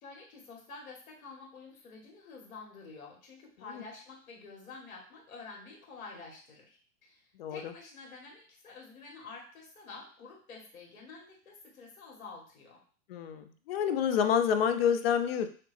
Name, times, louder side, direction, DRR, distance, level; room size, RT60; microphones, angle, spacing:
voice 1, 0.0-12.8, left 4 dB, 70° left, 0 dB, 1.7 m, -49 dB
voice 2, 7.4-7.7 13.1-15.5, left 8 dB, 45° left, 8 dB, 0.5 m, -28 dB
5.7 x 2.0 x 3.3 m, 0.42 s
hypercardioid pair, 135°, 43 cm